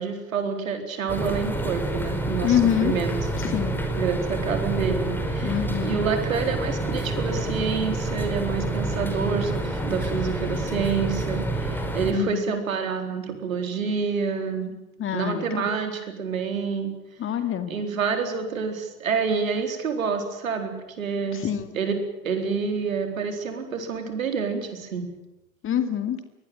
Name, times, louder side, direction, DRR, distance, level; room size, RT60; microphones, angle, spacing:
voice 1, 0.0-3.2 4.0-14.7 15.1-16.9 17.7-21.4 21.7-22.0 22.2-25.1, right 5 dB, 70° right, 6 dB, 4.2 m, -28 dB
sound 1, 1.1-12.1, right 1 dB, 5° left, 5.0 m, -28 dB
voice 2, 2.4-2.9 3.4-3.8 5.4-6.0 12.1-12.5 15.0-15.7 17.2-17.7 21.3-21.7 25.6-26.2, left 10 dB, 30° left, 9 dB, 2.4 m, -25 dB
23.0 x 19.0 x 9.2 m, 0.93 s
figure-of-eight pair, 80°, 41 cm